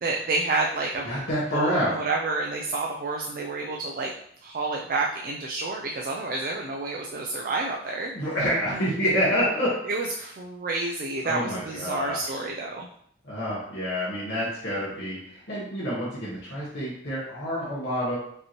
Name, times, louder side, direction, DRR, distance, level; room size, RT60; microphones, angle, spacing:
voice 1, 0.0-1.1 1.5-4.1 4.4-8.1 8.7-8.9 9.9-12.9, right 3 dB, 45° right, 0 dB, 0.4 m, -29 dB
voice 2, 1.1-1.9 8.1-9.7 11.2-12.4 13.2-18.2, equal, 60° left, -8 dB, 1.1 m, -28 dB
5.2 x 2.9 x 2.9 m, 0.68 s
head